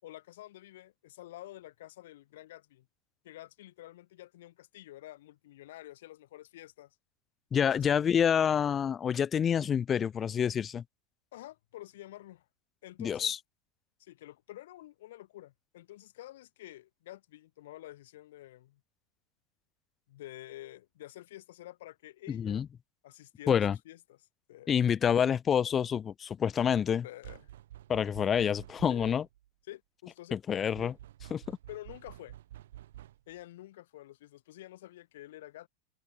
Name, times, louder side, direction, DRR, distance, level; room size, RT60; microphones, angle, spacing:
voice 1, 0.0-2.9 3.2-7.0 7.6-7.8 11.3-12.5 12.8-13.3 14.0-18.8 20.1-22.6 23.0-24.2 24.5-24.7 27.0-27.5 28.9-29.1 29.7-30.4 30.8-30.9 31.7-32.4 33.3-35.7, left 15 dB, 75° left, 3.7 m, -49 dB
voice 2, 7.5-10.8 13.0-13.4 22.3-22.7 23.5-23.8 24.7-27.0 27.9-29.3 30.3-30.9 31.3-31.6, left 8 dB, 20° left, 0.9 m, -27 dB
sound 1, 27.2-29.5 30.7-33.4, right 13 dB, 80° right, 7.4 m, -50 dB
supercardioid pair, 140°, 0 cm